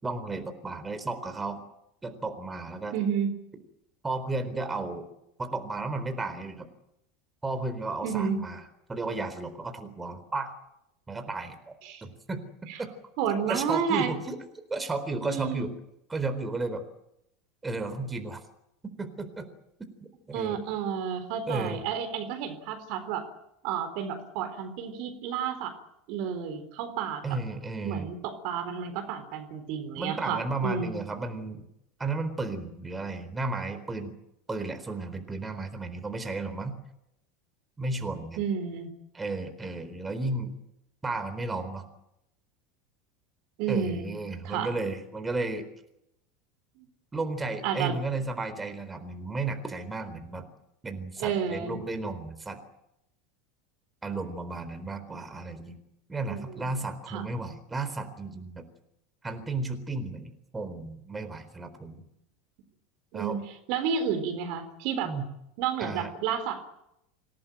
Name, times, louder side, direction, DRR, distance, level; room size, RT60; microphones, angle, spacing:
voice 1, 0.0-1.6 2.0-3.0 4.0-5.1 5.4-6.7 7.4-8.6 8.9-10.5 11.1-11.7 12.0-12.4 12.8-12.9 13.5-14.4 14.7-15.7 16.1-16.8 17.6-18.4 19.0-19.5 20.3-20.6 21.5-21.8 27.2-28.1 30.0-31.6 32.0-34.1 34.5-36.8 37.8-38.4 39.1-40.5 41.0-41.9 43.7-45.7 47.1-50.5 50.8-52.6 54.0-55.8 56.1-58.7 59.2-62.0 63.1-63.4 65.0-65.3 65.8-66.1, right 3 dB, 15° right, 8 dB, 4.1 m, -33 dB
voice 2, 2.9-3.3 8.0-8.4 11.8-12.0 13.2-14.1 15.2-15.7 20.3-23.3 23.6-25.8 26.1-27.2 27.9-30.9 38.4-38.9 43.6-44.1 44.4-44.7 46.8-46.9 47.6-47.9 51.2-51.8 56.3-56.7 57.1-57.3 63.1-63.4 63.7-65.1 65.6-66.6, right 7 dB, 55° right, 8 dB, 3.9 m, -31 dB
27.0 x 18.0 x 9.0 m, 0.83 s
figure-of-eight pair, 80°, 0 cm